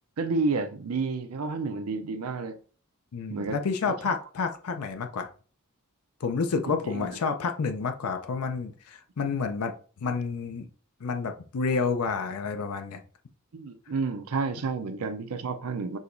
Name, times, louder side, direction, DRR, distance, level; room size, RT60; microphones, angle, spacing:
voice 1, 0.2-2.6 3.3-3.6 3.9-4.1 6.7-7.1 13.5-16.0, right 4 dB, 80° right, 0.6 m, -30 dB
voice 2, 3.1-5.3 6.2-10.7 11.0-13.0, left 5 dB, 85° left, 0.5 m, -29 dB
6.3 x 2.9 x 2.6 m
head